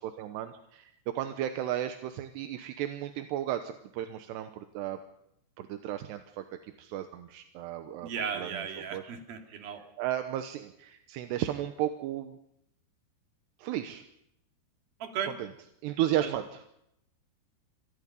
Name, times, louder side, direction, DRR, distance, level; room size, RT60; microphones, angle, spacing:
voice 1, 0.0-5.0 5.6-6.4 6.8-8.1 8.4-8.7 8.9-9.0 9.5-9.6 10.0-12.4 13.6-14.1 15.8-16.7, right 12 dB, 80° right, 7 dB, 3.1 m, -34 dB
voice 2, 8.0-9.8 15.0-15.4 16.2-16.3, right 7 dB, 60° right, 4 dB, 3.9 m, -35 dB
27.0 x 20.0 x 5.3 m, 0.78 s
omnidirectional pair, 5.0 m